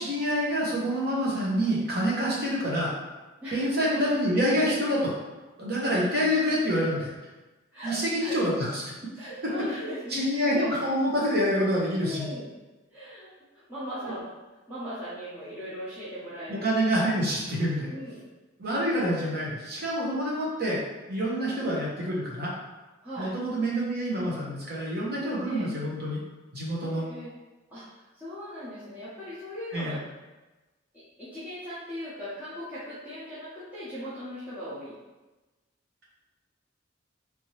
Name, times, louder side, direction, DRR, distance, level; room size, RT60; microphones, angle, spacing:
voice 1, 0.0-2.9 3.5-5.1 5.6-7.1 7.8-8.8 10.1-12.3 16.5-17.9 18.6-20.8 21.1-22.5 23.2-26.2 26.5-27.0 29.7-30.0, equal, 55° right, -5 dB, 1.1 m, -27 dB
voice 2, 7.7-8.4 9.2-10.5 12.0-12.5 12.9-13.3 13.7-14.3 14.7-16.6 17.9-18.2 23.0-23.3 25.4-25.7 26.8-27.3 27.7-27.8 28.2-30.0 31.2-35.0, equal, 10° right, -14 dB, 1.0 m, -38 dB
3.5 x 2.9 x 3.1 m, 1.1 s
head